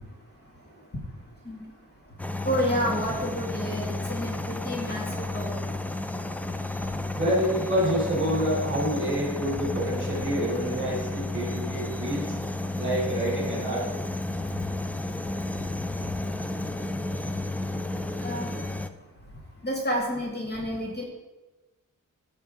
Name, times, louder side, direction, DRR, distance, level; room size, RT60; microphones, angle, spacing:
sound 1, 2.2-18.9, left 2 dB, 5° left, 0.3 m, -32 dB
voice 1, 2.5-5.5 18.2-18.5 19.6-21.0, equal, 30° left, -3 dB, 1.9 m, -29 dB
voice 2, 7.1-12.3 12.8-13.8, equal, 35° right, -2 dB, 3.3 m, -27 dB
14.5 x 5.7 x 3.7 m, 1.1 s
wide cardioid pair, 170°, 33 cm